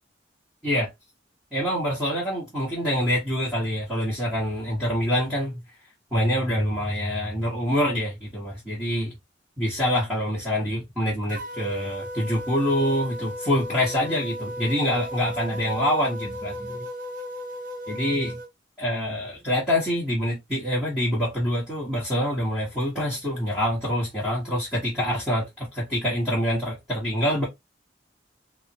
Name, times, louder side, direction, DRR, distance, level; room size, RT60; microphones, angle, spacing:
voice 1, 1.5-5.6 6.1-9.1 9.6-16.9 17.9-18.4 18.8-27.5, equal, 5° right, 1.1 m, -26 dB
sound 1, 11.3-18.5, equal, 45° right, 0.7 m, -36 dB
3.4 x 2.1 x 2.7 m
head